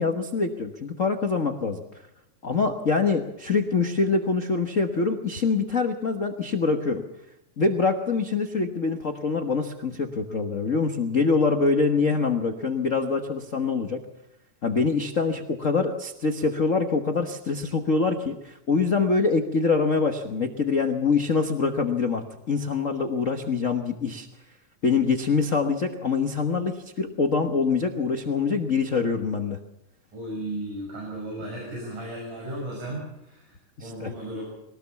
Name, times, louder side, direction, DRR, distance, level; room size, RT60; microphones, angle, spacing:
voice 1, 0.0-1.8 2.4-7.0 7.6-14.0 14.6-24.3 24.8-29.6 33.8-34.1, left 4 dB, 85° left, 5 dB, 0.6 m, -24 dB
voice 2, 30.1-34.5, right 1 dB, 80° right, -3 dB, 8.1 m, -35 dB
22.5 x 18.5 x 7.1 m, 0.86 s
omnidirectional pair, 3.5 m